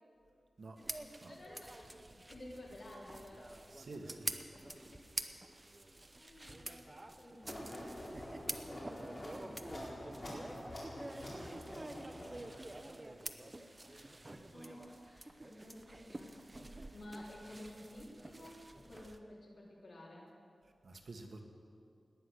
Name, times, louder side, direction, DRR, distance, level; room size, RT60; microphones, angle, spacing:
sound 1, 0.8-19.2, right 2 dB, 25° right, 0.8 m, -48 dB
voice 1, 1.3-3.5 4.5-5.3 5.7-7.7 8.7-10.3 11.3-11.8 12.5-12.9 13.9-20.3, left 1 dB, 55° left, -4 dB, 3.5 m, -54 dB
voice 2, 3.7-4.4 20.8-21.4, right 2 dB, 60° right, 2 dB, 1.6 m, -49 dB
sound 2, 7.4-12.7, left 1 dB, 35° left, 4.3 m, -47 dB
18.5 x 10.5 x 6.5 m, 2.5 s
wide cardioid pair, 120°, 0 cm